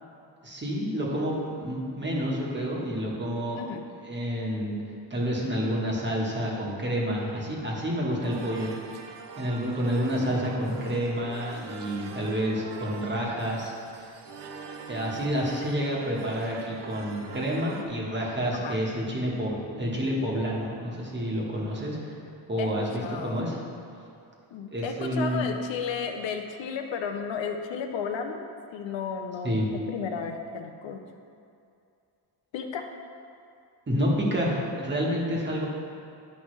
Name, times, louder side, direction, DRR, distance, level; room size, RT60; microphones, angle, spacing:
voice 1, 0.4-3.7 4.0-4.8 5.1-8.7 9.4-13.7 14.9-22.1 22.5-23.6 24.7-25.5 29.4-29.7 33.9-35.7, equal, 25° right, -3 dB, 1.3 m, -29 dB
sound 1, 8.2-17.8, right 5 dB, 65° right, 0.7 m, -43 dB
voice 2, 23.0-23.4 24.5-29.6 29.9-31.0 32.5-32.8, left 6 dB, 80° left, 4 dB, 0.7 m, -33 dB
10.5 x 5.3 x 3.2 m, 2.5 s
wide cardioid pair, 135°, 45 cm